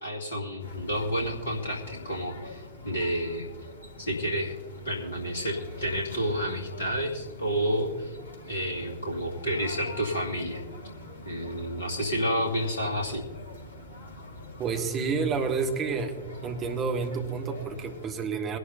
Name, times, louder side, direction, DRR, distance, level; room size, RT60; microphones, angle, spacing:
voice 1, 0.0-3.5 4.1-4.5 4.8-8.2 8.5-10.6 11.2-13.2, equal, 70° left, -2 dB, 2.1 m, -30 dB
sound 1, 0.6-18.1, left 1 dB, 90° right, 2.2 m, -44 dB
voice 2, 14.6-16.2 16.4-18.6, right 5 dB, 30° right, 4 dB, 1.6 m, -29 dB
21.5 x 11.5 x 2.7 m, 1.3 s
figure-of-eight pair, 90°, 0 cm